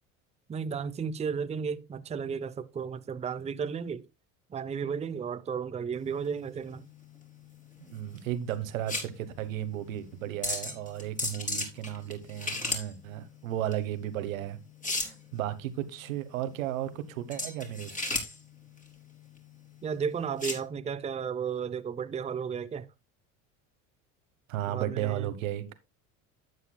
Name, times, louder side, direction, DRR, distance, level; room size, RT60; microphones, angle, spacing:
voice 1, 0.5-4.1 4.5-6.8 19.8-22.9 24.7-25.3, right 6 dB, 15° right, 0.6 m, -33 dB
sound 1, 6.0-20.6, left 2 dB, 20° left, 3.3 m, -37 dB
voice 2, 7.9-14.6 14.9-18.2 24.5-25.7, right 12 dB, 85° right, 1.2 m, -34 dB
12.0 x 8.2 x 2.2 m
hypercardioid pair, 85°, 39 cm